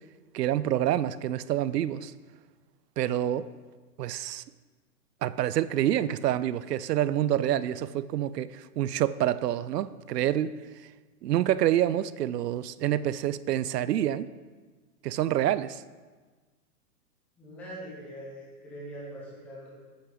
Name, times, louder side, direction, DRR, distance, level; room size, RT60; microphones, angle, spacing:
voice 1, 0.3-2.1 3.0-3.5 4.0-4.4 5.2-10.9 11.2-14.3 15.0-15.8, right 12 dB, 90° right, 0.6 m, -27 dB
voice 2, 17.4-19.7, right 1 dB, 5° left, 0.5 m, -42 dB
8.5 x 8.4 x 3.8 m
hypercardioid pair, 160°, 47 cm